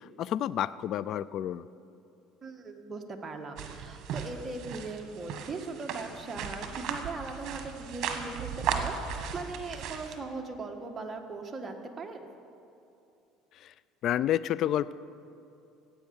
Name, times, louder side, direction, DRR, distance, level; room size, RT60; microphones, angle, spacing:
voice 1, 0.0-1.6 13.5-13.7 14.0-14.9, left 11 dB, 55° left, 18 dB, 0.3 m, -30 dB
voice 2, 2.4-12.3, right 3 dB, 20° right, 2 dB, 1.5 m, -39 dB
sound 1, 3.6-10.2, right 7 dB, 55° right, 1.5 m, -36 dB
15.5 x 8.7 x 7.1 m, 2.7 s
supercardioid pair, 110°, 0 cm